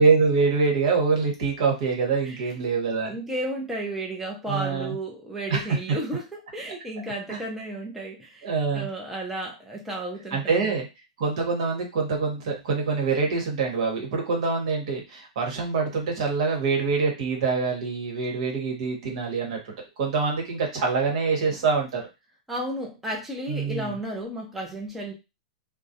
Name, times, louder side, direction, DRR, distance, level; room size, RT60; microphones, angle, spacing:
voice 1, 0.0-3.1 4.5-4.9 5.5-5.6 7.3-7.4 8.4-8.9 10.3-10.8 11.2-22.0 23.5-24.0, right 4 dB, 60° right, 1 dB, 1.1 m, -25 dB
voice 2, 3.0-10.7 22.5-25.1, right 1 dB, 5° right, -1 dB, 0.5 m, -33 dB
2.3 x 2.0 x 2.7 m, 0.26 s
supercardioid pair, 150°, 4 cm